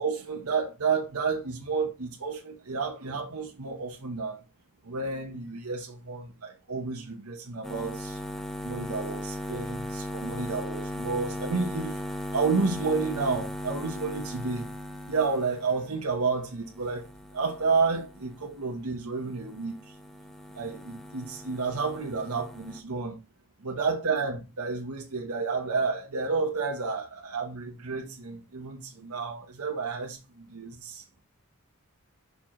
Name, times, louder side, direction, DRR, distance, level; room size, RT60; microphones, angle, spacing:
voice 1, 0.0-4.4 4.8-8.2 8.6-12.0 12.3-14.7 15.1-17.1 17.3-19.8 20.6-23.2 23.6-31.0, right 4 dB, 90° right, 1.0 m, -30 dB
sound 1, 7.6-18.9 19.2-22.8, equal, ahead, 0.7 m, -38 dB
5.8 x 4.6 x 3.7 m
head